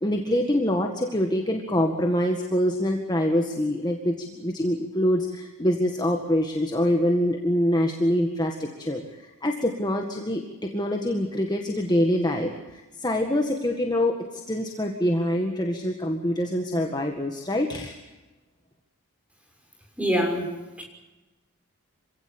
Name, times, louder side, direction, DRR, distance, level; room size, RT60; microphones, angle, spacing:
voice 1, 0.0-18.0, left 1 dB, 20° left, 2 dB, 1.9 m, -25 dB
voice 2, 20.0-20.5 20.8-20.9, equal, 5° right, 2 dB, 6.2 m, -24 dB
27.0 x 17.0 x 8.7 m, 1.1 s
head